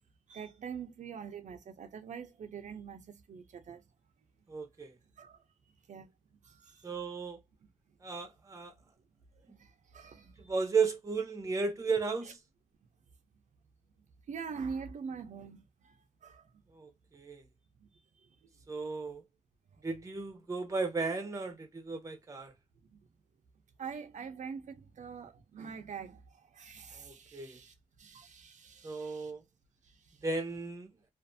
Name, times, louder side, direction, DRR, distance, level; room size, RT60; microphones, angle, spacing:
voice 1, 0.3-3.8 5.2-5.4 5.9-6.1 6.4-6.9 7.6-7.7 9.5-10.3 12.2-12.3 14.3-16.5 17.8-17.9 18.4-18.5 22.9-23.0 23.8-29.3 29.8-30.2, right 6 dB, 75° right, 0.6 m, -44 dB
voice 2, 4.5-4.9 6.8-7.4 8.0-8.7 10.4-12.4 16.7-17.4 18.7-19.2 19.8-22.5 26.9-27.6 28.8-29.4 30.2-30.9, right 4 dB, 25° right, 0.7 m, -34 dB
2.5 x 2.5 x 2.6 m
wide cardioid pair, 145°, 13 cm